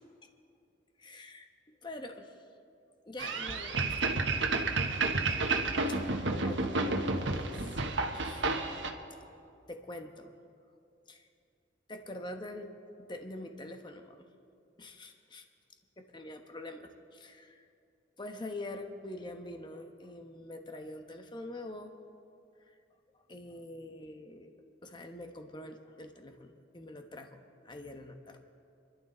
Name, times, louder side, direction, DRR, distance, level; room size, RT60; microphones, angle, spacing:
voice 1, 1.0-1.5 1.8-2.4 3.1-4.7 5.9-6.0 6.4-7.8 8.1-8.5 9.7-10.3 11.1-11.3 11.9-12.7 13.0-14.3 14.8-15.5 16.0-17.7 18.2-21.9 22.6-22.8 23.1-24.5 24.8-28.4, left 1 dB, 25° left, 5 dB, 1.1 m, -45 dB
sound 1, 3.2-8.9, right 3 dB, 85° right, 1.2 m, -31 dB
29.5 x 12.0 x 4.0 m, 2.5 s
head